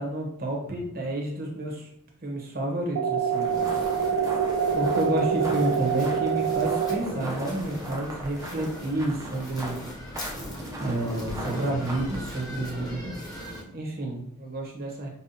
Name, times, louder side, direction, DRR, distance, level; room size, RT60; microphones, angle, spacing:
voice 1, 0.0-1.9 2.2-3.6 4.7-9.7 10.8-13.2 13.7-15.1, right 1 dB, 45° right, 0 dB, 1.0 m, -30 dB
sound 1, 3.0-7.0, right 7 dB, 70° right, 0.3 m, -25 dB
sound 2, 3.3-12.5, right 1 dB, 15° right, 0.5 m, -41 dB
sound 3, 3.4-13.6, equal, 15° left, 0.8 m, -39 dB
5.4 x 2.2 x 2.7 m, 0.72 s
head